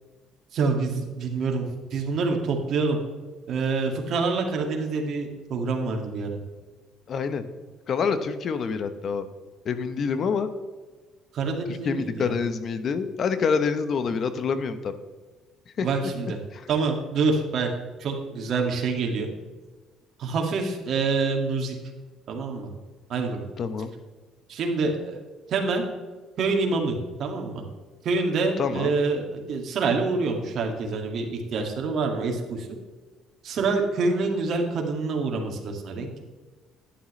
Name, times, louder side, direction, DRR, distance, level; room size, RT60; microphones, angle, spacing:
voice 1, 0.5-3.0 3.5-6.4 11.3-12.3 15.8-16.4 16.7-17.7 18.0-19.3 20.2-21.7 22.3-22.7 23.1-23.4 24.5-25.2 25.5-25.8 26.4-27.6 28.0-32.7 33.4-36.2, right 4 dB, 55° right, 2 dB, 2.1 m, -26 dB
voice 2, 7.1-7.4 7.9-9.3 9.6-10.5 11.7-14.9 15.8-15.9 16.5-16.7 23.6-23.9 28.6-29.0, left 5 dB, 50° left, 11 dB, 0.9 m, -27 dB
11.0 x 10.0 x 3.2 m, 1.3 s
cardioid pair, 110°, 0 cm